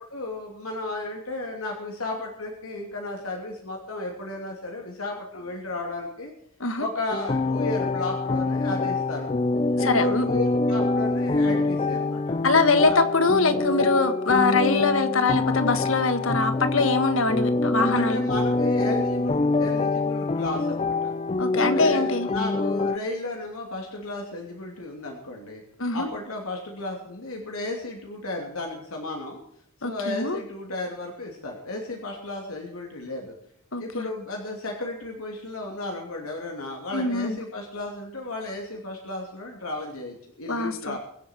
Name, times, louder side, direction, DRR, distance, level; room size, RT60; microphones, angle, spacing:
voice 1, 0.1-6.3 6.8-9.4 9.8-12.4 12.9-13.0 18.0-21.1 21.6-25.6 25.9-29.4 29.8-33.3 33.8-41.0, left 2 dB, 80° left, 0 dB, 3.0 m, -34 dB
sound 1, 7.1-23.0, left 3 dB, 30° left, 0.5 m, -25 dB
voice 2, 9.8-10.2 12.4-18.2 21.4-22.3 25.8-26.1 29.8-30.4 33.7-34.1 36.9-37.4 40.5-41.0, left 3 dB, 65° left, 10 dB, 1.6 m, -23 dB
24.0 x 8.6 x 4.6 m, 0.71 s
head